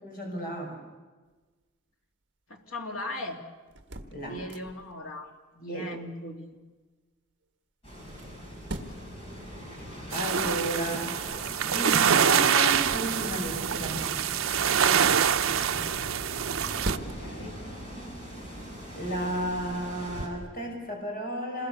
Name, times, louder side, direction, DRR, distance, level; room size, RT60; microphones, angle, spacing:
voice 1, 0.0-0.8 4.1-4.4 5.7-5.9 10.1-11.1 11.4-11.9 12.2-14.1 18.9-21.7, equal, 45° left, 0 dB, 6.1 m, -33 dB
voice 2, 2.5-3.4 4.2-6.6 11.7-12.1 15.6-16.7 17.1-17.6, left 1 dB, 80° left, 2 dB, 3.0 m, -39 dB
sound 1, 3.7-5.0 7.9-9.2 12.1-13.9 16.2-17.5 18.0-18.2 18.9-20.5, right 1 dB, 55° right, 1.7 m, -41 dB
sound 2, 7.8-20.3, equal, 25° left, 5.8 m, -41 dB
sound 3, 10.1-17.0, right 8 dB, 75° right, 0.7 m, -25 dB
27.5 x 21.0 x 6.9 m, 1.3 s
head